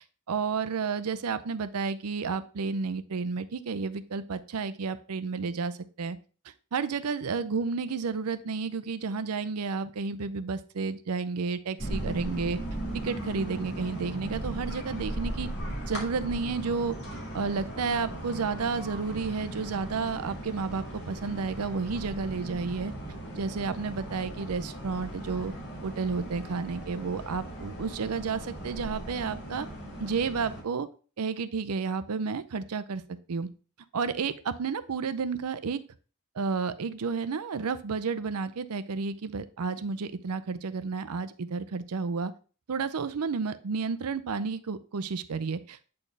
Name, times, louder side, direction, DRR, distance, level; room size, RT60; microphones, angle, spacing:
voice 1, 0.3-6.2 6.7-12.6 12.9-15.5 15.9-16.9 17.3-22.9 23.4-25.5 25.8-29.7 30.0-30.9 31.2-33.5 33.9-35.8 36.4-42.3 42.7-45.9, right 5 dB, 90° right, 13 dB, 0.6 m, -31 dB
sound 1, 11.8-30.6, right 1 dB, 50° left, 2.2 m, -38 dB
8.6 x 4.3 x 3.3 m, 0.36 s
head